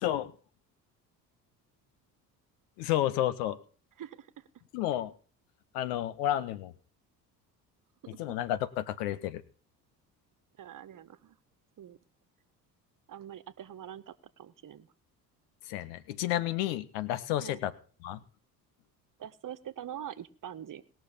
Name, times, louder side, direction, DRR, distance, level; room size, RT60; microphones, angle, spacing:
voice 1, 0.0-0.3 2.8-3.6 4.7-5.1 5.7-6.7 8.1-9.4 15.6-17.7 18.0-18.2, left 13 dB, 70° left, 15 dB, 1.7 m, -31 dB
voice 2, 4.0-4.3 8.1-8.2 10.6-11.4 11.8-12.0 13.1-14.9 17.4-17.6 19.2-20.8, right 10 dB, 40° right, 15 dB, 1.6 m, -44 dB
20.0 x 6.8 x 8.5 m, 0.39 s
figure-of-eight pair, 60°, 48 cm